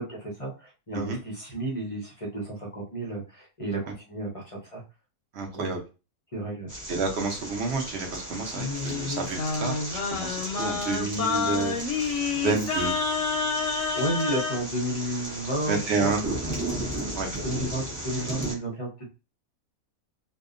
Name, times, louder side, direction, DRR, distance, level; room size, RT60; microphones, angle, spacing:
voice 1, 0.0-4.8 5.5-5.8 6.3-6.7 13.9-16.6 16.9-17.1 17.4-19.1, right 1 dB, 35° left, -2 dB, 0.5 m, -32 dB
voice 2, 5.3-5.8 6.9-12.9 15.7-16.2 17.1-17.3, right 4 dB, 55° right, 3 dB, 0.9 m, -30 dB
sound 1, 6.7-18.5, right 1 dB, 20° right, 0.5 m, -36 dB
Singing, 8.5-14.6, left 4 dB, 65° left, 0.9 m, -29 dB
2.7 x 2.2 x 2.4 m, 0.30 s
omnidirectional pair, 1.5 m